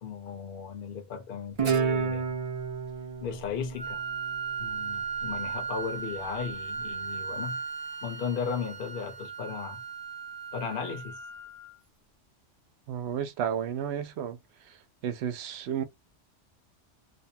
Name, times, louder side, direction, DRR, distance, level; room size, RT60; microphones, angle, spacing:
voice 1, 0.0-2.4 3.2-4.0 4.6-7.6 8.0-9.8 10.5-11.2, left 6 dB, 55° left, 0.8 m, -36 dB
Guitar, 1.6-4.8, right 6 dB, 40° right, 0.5 m, -30 dB
Wind instrument woodwind instrument, 3.8-11.7, right 5 dB, 20° right, 1.0 m, -37 dB
voice 2, 12.9-14.4 14.7-14.8 15.0-15.8, right 8 dB, 70° right, 0.8 m, -32 dB
2.7 x 2.2 x 2.6 m
omnidirectional pair, 1.2 m